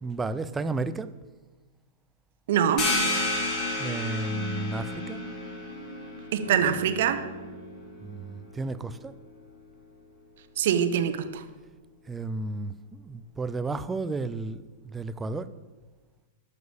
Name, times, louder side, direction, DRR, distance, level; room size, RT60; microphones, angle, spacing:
voice 1, 0.0-1.1 3.8-5.2 8.0-9.1 12.1-12.7 13.0-15.5, right 3 dB, 15° right, 0.6 m, -32 dB
voice 2, 2.5-2.8 6.3-7.2 10.6-11.4, right 9 dB, 50° right, 1.1 m, -24 dB
sound 1, 2.8-8.1, left 2 dB, 35° left, 3.1 m, -31 dB
sound 2, 4.3-9.4, right 3 dB, 80° left, 3.7 m, -42 dB
12.5 x 6.7 x 7.0 m
figure-of-eight pair, 100°, 0 cm